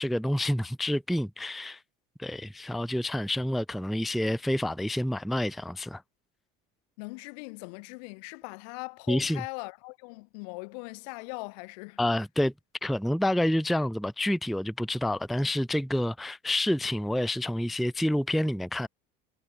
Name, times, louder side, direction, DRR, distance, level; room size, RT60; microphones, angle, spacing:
voice 1, 0.0-1.8 2.2-6.0 9.1-9.4 12.0-12.5 12.8-18.9, left 1 dB, ahead, 0.3 m, -28 dB
voice 2, 7.0-12.0, left 34 dB, 75° left, 1.8 m, -40 dB
cardioid pair, 165°, 21 cm